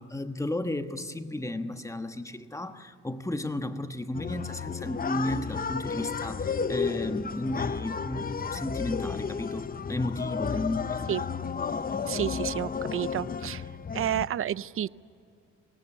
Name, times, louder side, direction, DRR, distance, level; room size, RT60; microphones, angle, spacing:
voice 1, 0.0-11.0, left 1 dB, 10° left, 8 dB, 1.3 m, -33 dB
sound 1, 4.1-14.3, left 6 dB, 30° left, 0.8 m, -32 dB
voice 2, 12.0-13.6 13.9-14.9, right 11 dB, 45° right, 19 dB, 0.5 m, -30 dB
26.0 x 18.0 x 9.9 m, 2.4 s
cardioid pair, 90°, 30 cm